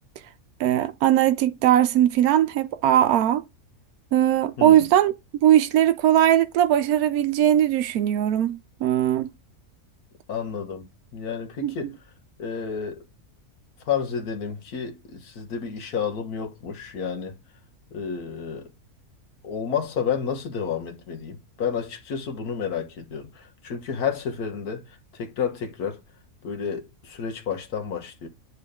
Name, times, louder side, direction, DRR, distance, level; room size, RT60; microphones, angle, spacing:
voice 1, 0.6-3.4 4.1-5.1 5.4-9.3 11.6-11.7, right 11 dB, 90° right, 1.1 m, -20 dB
voice 2, 10.3-12.0 12.4-13.0 13.9-17.4 17.9-18.7 19.4-26.0 26.4-28.3, left 7 dB, 85° left, 1.7 m, -30 dB
8.2 x 3.7 x 3.6 m
omnidirectional pair, 1.6 m